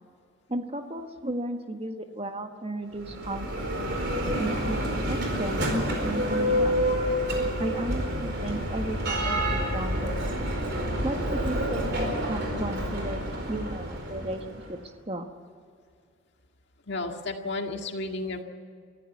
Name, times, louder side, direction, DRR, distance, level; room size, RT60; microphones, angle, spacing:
voice 1, 0.5-3.7 4.4-6.7 7.6-10.3 11.0-14.8 15.1-15.3, right 1 dB, 30° right, 6 dB, 1.5 m, -34 dB
Bell, 2.9-14.7, equal, 50° right, 4.6 m, -28 dB
voice 2, 16.8-18.4, left 2 dB, 55° left, 3 dB, 2.0 m, -32 dB
24.0 x 15.0 x 8.5 m, 2.2 s
head